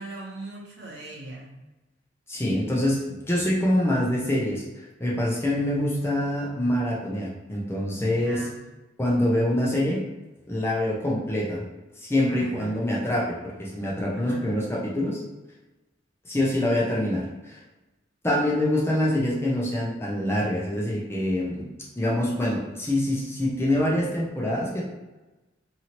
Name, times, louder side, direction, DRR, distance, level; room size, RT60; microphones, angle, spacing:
voice 1, 0.0-1.6 8.0-8.6 12.3-12.8 14.1-14.5, right 2 dB, 60° right, -3 dB, 0.8 m, -40 dB
voice 2, 2.3-4.6 5.0-8.5 9.0-10.0 10.5-11.6 12.0-15.2 16.2-17.6 18.2-21.6 22.0-24.8, left 1 dB, 15° left, -5 dB, 0.5 m, -25 dB
2.8 x 2.7 x 2.9 m, 1.1 s
head